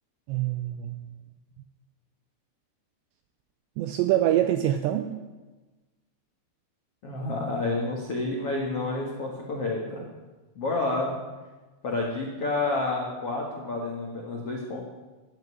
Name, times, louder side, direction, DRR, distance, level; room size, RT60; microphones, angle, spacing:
voice 1, 0.3-1.1 3.8-5.2, right 12 dB, 85° right, 8 dB, 2.5 m, -25 dB
voice 2, 7.0-10.0 10.5-11.2 11.8-14.8, left 2 dB, 75° left, -2 dB, 1.3 m, -29 dB
12.0 x 8.2 x 9.7 m, 1.2 s
omnidirectional pair, 5.6 m